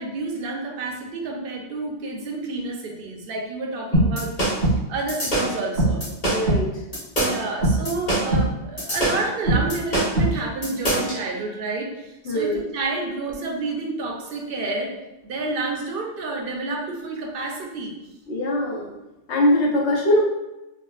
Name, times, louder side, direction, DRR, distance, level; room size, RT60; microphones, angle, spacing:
voice 1, 0.0-6.0 7.2-14.9 15.2-17.9, right 3 dB, 60° right, 0 dB, 0.7 m, -29 dB
sound 1, 3.9-11.2, right 1 dB, 35° left, 1.1 m, -21 dB
voice 2, 6.3-6.8 12.2-12.6 18.3-18.9 19.3-20.2, left 1 dB, 75° left, -3 dB, 1.0 m, -21 dB
3.5 x 2.1 x 2.3 m, 0.96 s
omnidirectional pair, 1.2 m